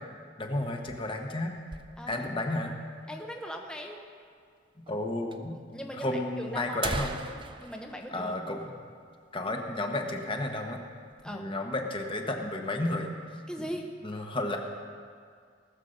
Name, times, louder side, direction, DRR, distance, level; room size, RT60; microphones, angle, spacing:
voice 1, 0.4-1.5 2.1-2.7 4.9-7.2 8.1-8.7 9.3-10.8 11.2-13.1 13.6-13.7 14.0-14.6, left 1 dB, 30° left, 2 dB, 1.3 m, -32 dB
sound 1, 0.6-2.4 2.8-2.9 3.1-3.2 3.9-4.0 4.9-5.0 5.3-5.4 6.2-6.3 6.6-9.2 9.5-9.7 10.1-10.3 10.7-11.3, right 3 dB, 25° right, 0.5 m, -40 dB
voice 2, 2.0-2.5 3.1-4.0 5.7-6.8 7.6-8.3 11.2-11.5 13.5-13.9, equal, 5° left, 2 dB, 0.9 m, -39 dB
19.0 x 7.4 x 6.6 m, 2.1 s
head